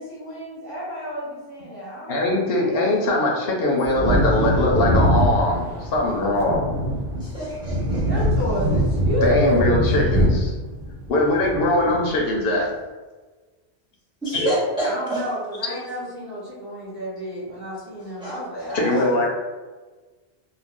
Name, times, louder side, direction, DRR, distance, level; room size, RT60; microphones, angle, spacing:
voice 1, 0.0-3.2 8.1-9.8 12.2-12.4 14.8-19.2, equal, 25° right, -9 dB, 1.0 m, -30 dB
voice 2, 2.1-6.7 9.2-10.5 11.1-12.7 14.3-14.5 18.7-19.3, left 1 dB, 70° left, -1 dB, 0.8 m, -21 dB
Wind / Thunder, 3.8-12.1 12.4-12.5, equal, 60° right, 0.7 m, -22 dB
voice 3, 7.2-8.1 14.2-15.2 18.2-18.4, right 1 dB, 5° right, -6 dB, 0.4 m, -27 dB
2.5 x 2.2 x 3.5 m, 1.3 s
omnidirectional pair, 1.1 m